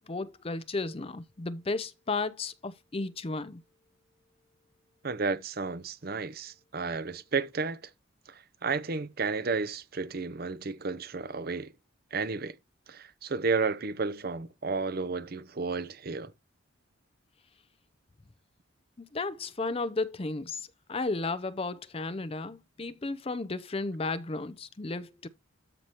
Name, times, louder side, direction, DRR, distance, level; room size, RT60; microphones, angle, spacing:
voice 1, 0.0-3.6 19.0-25.3, left 3 dB, 30° left, 0.5 m, -34 dB
voice 2, 5.0-7.8 8.3-11.7 12.1-12.5 12.9-16.3, right 4 dB, 45° right, 0.6 m, -32 dB
13.0 x 4.7 x 2.9 m
head